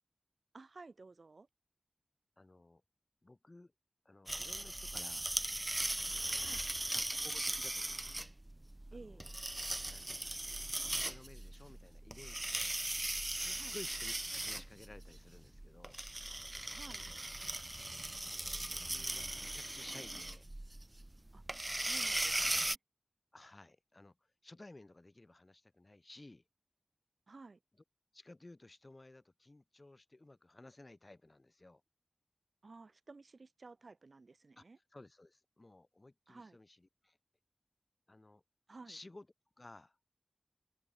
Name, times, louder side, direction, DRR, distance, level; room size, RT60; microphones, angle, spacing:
voice 1, 0.5-1.5 6.4-6.6 8.9-9.2 13.5-13.7 16.7-17.1 21.3-21.4 21.8-22.8 27.3-27.6 32.6-34.8 36.3-36.6 38.7-39.0, right 3 dB, 85° right, 2.7 m, -54 dB
voice 2, 2.4-2.8 3.2-3.7 4.1-5.3 6.0-6.6 6.8-8.1 8.9-9.3 9.8-10.5 10.8-12.7 13.3-16.0 18.2-20.5 21.6-21.9 23.3-26.4 28.1-31.8 34.6-34.7 34.9-37.2 38.1-38.4 38.9-39.3 39.6-40.0, left 2 dB, 45° left, 3.4 m, -56 dB
sound 1, 4.3-22.8, right 1 dB, 30° right, 0.6 m, -39 dB
wide cardioid pair, 45°, 0 cm